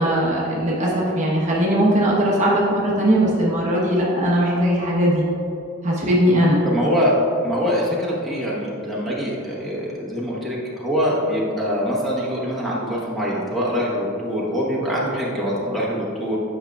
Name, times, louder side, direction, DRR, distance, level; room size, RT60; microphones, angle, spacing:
voice 1, 0.0-5.2 5.8-6.6, equal, 35° right, -4 dB, 0.9 m, -19 dB
voice 2, 6.6-7.1 7.4-16.4, equal, ahead, -7 dB, 1.2 m, -24 dB
8.3 x 6.0 x 2.3 m, 2.9 s
head